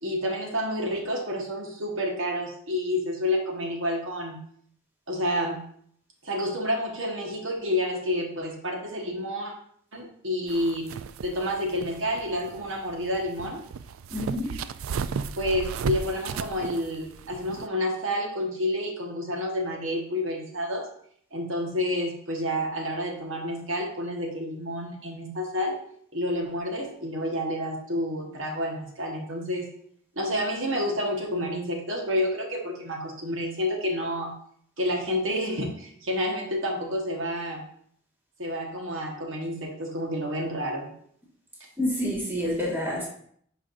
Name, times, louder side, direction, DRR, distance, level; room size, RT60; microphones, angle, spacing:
voice 1, 0.0-4.4 5.1-5.6 6.2-9.5 9.9-10.9 11.2-13.6 15.3-20.9 21.3-25.8 26.1-29.7 30.1-34.3 34.8-37.6 38.4-40.9, left 1 dB, 70° right, 0 dB, 1.4 m, -29 dB
sound 1, 10.5-17.7, right 6 dB, 85° right, 0.4 m, -35 dB
voice 2, 14.1-14.5 41.8-43.1, left 1 dB, 10° right, -4 dB, 1.7 m, -28 dB
10.0 x 5.0 x 2.6 m, 0.63 s
head